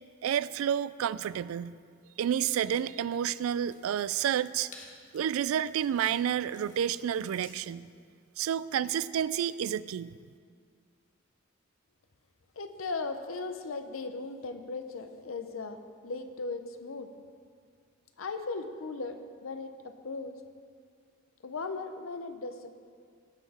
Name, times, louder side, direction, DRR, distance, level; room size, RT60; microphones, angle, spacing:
voice 1, 0.2-1.8 2.2-4.7 5.1-7.9 8.4-10.1, right 9 dB, 75° right, 17 dB, 0.3 m, -30 dB
sound 1, 2.4-8.1, left 3 dB, 40° left, 1.4 m, -56 dB
voice 2, 12.6-17.1 18.2-20.3 21.4-22.7, left 3 dB, 70° left, 8 dB, 0.7 m, -37 dB
17.5 x 5.9 x 4.2 m, 2.1 s
head